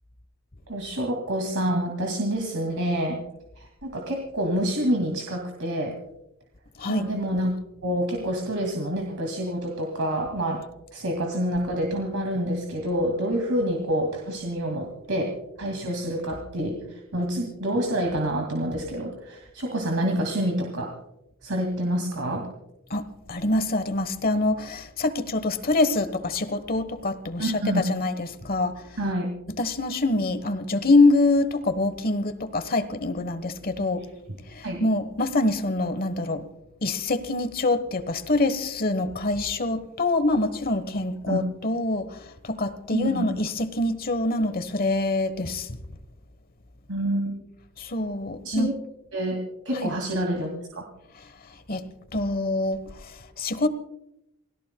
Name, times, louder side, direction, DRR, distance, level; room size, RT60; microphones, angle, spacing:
voice 1, 0.7-3.2 3.6-5.9 6.9-7.5 7.8-10.6 10.9-20.9 21.4-22.5 27.4-27.8 29.0-29.3 34.6-34.8 41.3-41.4 42.9-43.3 46.9-47.4 48.4-48.7 49.1-49.4 49.6-50.8, right 1 dB, 75° right, 2.3 m, -27 dB
voice 2, 22.9-28.8 29.6-34.1 34.5-36.4 36.8-45.8 47.8-48.7 49.7-49.9 51.7-53.7, left 2 dB, 45° left, 1.1 m, -25 dB
29.0 x 17.0 x 2.2 m
head